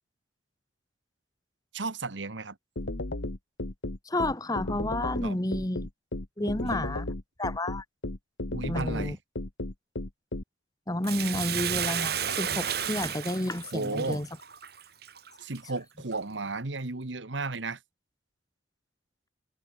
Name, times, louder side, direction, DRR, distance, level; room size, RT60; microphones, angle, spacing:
voice 1, 1.7-2.6 5.2-5.4 6.4-6.9 8.5-9.2 13.7-14.2 15.4-17.8, right 3 dB, 80° right, 1.5 m, -34 dB
sound 1, 2.8-10.4, left 2 dB, 90° left, 1.9 m, -33 dB
voice 2, 4.0-5.9 6.4-7.1 7.4-7.8 8.7-9.2 10.9-14.3, left 1 dB, 20° left, 1.5 m, -30 dB
Bathtub (filling or washing), 11.0-15.6 16.1-16.2, right 8 dB, 55° right, 4.4 m, -32 dB
head